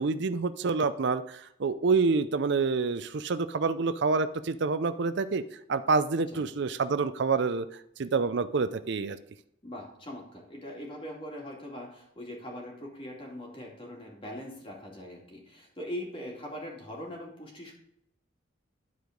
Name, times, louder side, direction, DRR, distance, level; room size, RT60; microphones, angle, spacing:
voice 1, 0.0-5.4 5.7-7.7 8.0-9.2, right 4 dB, 60° right, 12 dB, 0.5 m, -27 dB
voice 2, 9.6-17.7, left 1 dB, 30° left, -1 dB, 2.5 m, -41 dB
11.5 x 4.8 x 5.2 m, 0.74 s
head